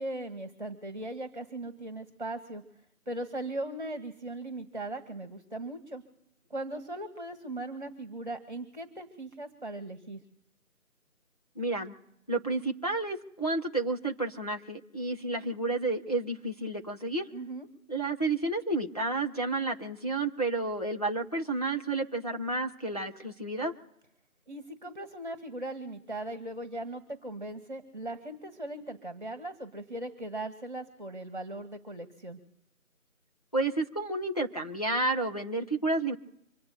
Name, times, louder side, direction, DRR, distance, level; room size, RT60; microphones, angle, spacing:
voice 1, 0.0-2.6 3.1-6.0 6.5-10.2 17.3-17.7 24.5-32.4, right 1 dB, 30° right, 8 dB, 1.7 m, -39 dB
voice 2, 11.6-11.9 12.3-17.3 17.9-23.7 33.5-36.2, right 2 dB, 25° left, 1 dB, 1.0 m, -31 dB
26.0 x 9.5 x 4.2 m, 0.75 s
figure-of-eight pair, 170°, 44 cm